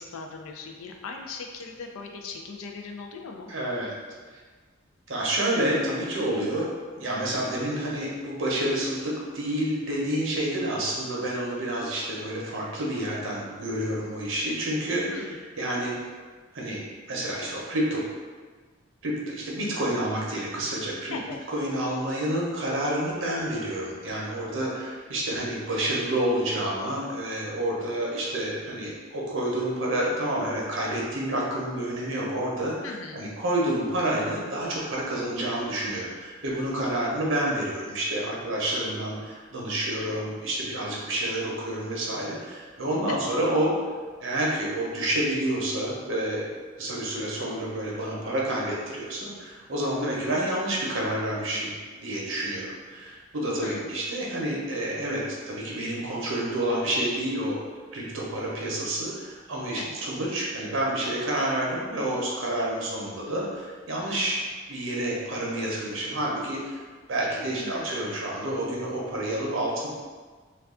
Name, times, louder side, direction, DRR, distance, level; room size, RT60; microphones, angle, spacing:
voice 1, 0.0-3.5 15.1-15.4 21.1-21.4 32.8-33.3 43.1-43.3 53.6-53.9 59.7-60.0 67.5-67.9, left 4 dB, 90° left, 3 dB, 0.4 m, -38 dB
voice 2, 3.5-3.9 5.1-15.2 15.6-16.0 16.5-16.8 17.1-18.0 19.0-21.1 21.5-43.7 44.2-46.4 46.8-51.7 52.0-57.6 57.9-64.4 64.7-66.8 67.1-69.9, right 1 dB, 70° right, -4 dB, 0.7 m, -29 dB
2.3 x 2.3 x 3.6 m, 1.5 s
head